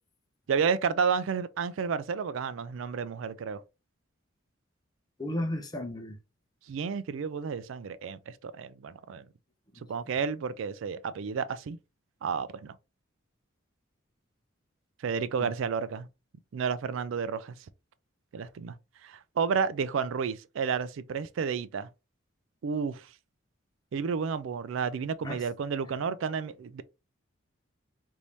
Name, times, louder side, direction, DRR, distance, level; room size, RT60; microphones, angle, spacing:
voice 1, 0.5-3.6 6.7-9.2 9.9-11.8 12.2-12.7 15.0-16.1 16.5-17.6 18.3-18.7 19.0-21.9 22.6-23.1 23.9-26.8, right 6 dB, 70° right, 0.4 m, -31 dB
voice 2, 5.2-6.2 15.4-15.5 25.2-25.4, left 1 dB, 20° left, 0.6 m, -34 dB
3.4 x 2.7 x 2.9 m
head